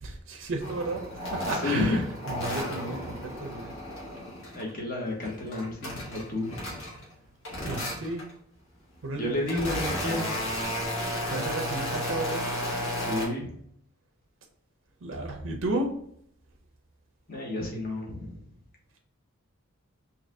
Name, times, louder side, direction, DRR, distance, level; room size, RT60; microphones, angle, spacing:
voice 1, 0.0-2.0 2.3-3.7 7.7-8.2 9.0-9.5 11.2-12.5 15.0-15.9, right 2 dB, 60° right, 2 dB, 0.6 m, -33 dB
sound 1, 0.6-4.7 5.1-7.1 7.4-8.3 9.0-13.3, left 1 dB, 65° left, 1.5 m, -33 dB
voice 2, 1.4-2.0 2.7-2.9 4.5-6.5 9.1-10.4 13.0-13.5 17.3-18.4, left 2 dB, 40° left, -1 dB, 1.0 m, -31 dB
4.0 x 2.7 x 2.6 m, 0.67 s
head